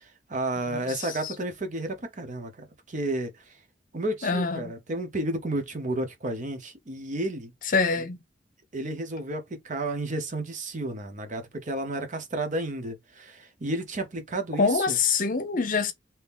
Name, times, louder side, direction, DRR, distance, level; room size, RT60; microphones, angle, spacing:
voice 1, 0.0-3.4 3.9-7.5 8.7-15.0, right 2 dB, 45° right, 0.8 m, -32 dB
voice 2, 4.2-4.7 7.7-8.2 14.6-15.9, left 4 dB, 50° left, 0.7 m, -25 dB
2.9 x 2.7 x 3.5 m
head